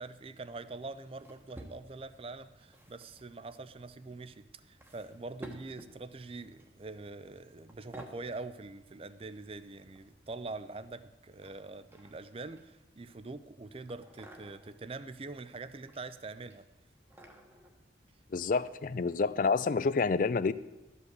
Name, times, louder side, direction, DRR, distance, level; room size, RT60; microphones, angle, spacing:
voice 1, 0.0-16.7, right 3 dB, 30° right, 0.5 m, -44 dB
sound 1, 1.1-2.2 2.6-3.2 4.0-4.2 4.8-6.0 6.6-6.9 7.2-7.4 7.7-8.2 9.5-10.4 11.4-12.9 13.9-14.8 15.5-16.1 16.4-17.7 18.5-18.7 19.2-19.3, equal, 10° right, 1.1 m, -53 dB
voice 2, 18.3-20.5, left 4 dB, 45° left, 0.4 m, -28 dB
13.0 x 5.5 x 8.0 m
head